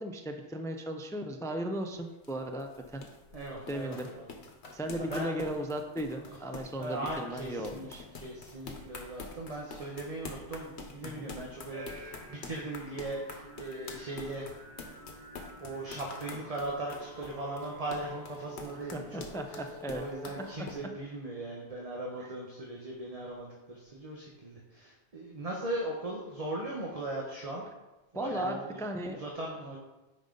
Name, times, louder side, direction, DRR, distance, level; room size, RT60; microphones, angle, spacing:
voice 1, 0.0-3.1 3.7-4.1 4.7-8.1 11.0-11.3 12.4-12.5 18.7-20.0 20.6-20.7 22.2-22.3 28.1-29.2, right 1 dB, 5° left, 5 dB, 0.4 m, -36 dB
sound 1, 1.7-20.8, left 4 dB, 90° left, 1.3 m, -46 dB
voice 2, 3.3-4.3 5.0-5.5 6.3-6.4 6.8-7.9 8.1-14.5 15.6-19.6 19.9-27.6 28.1-29.8, right 2 dB, 35° right, -2 dB, 1.0 m, -39 dB
sound 2, 11.7-20.5, right 1 dB, 20° right, 1.9 m, -49 dB
9.1 x 5.3 x 3.8 m, 1.1 s
omnidirectional pair, 1.1 m